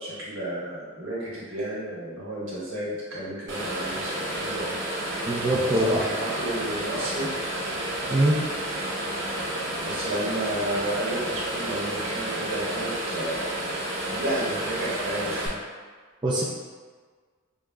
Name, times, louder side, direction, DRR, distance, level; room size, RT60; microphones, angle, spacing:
voice 1, 0.0-4.8 5.6-7.3 9.8-13.5 14.1-15.6, right 1 dB, 80° right, -8 dB, 1.2 m, -32 dB
sound 1, 3.5-15.5, right 1 dB, 60° right, 0.9 m, -31 dB
voice 2, 5.3-6.0 8.1-8.4 16.2-16.4, right 1 dB, 20° right, -7 dB, 0.3 m, -22 dB
4.9 x 2.0 x 2.3 m, 1.5 s
head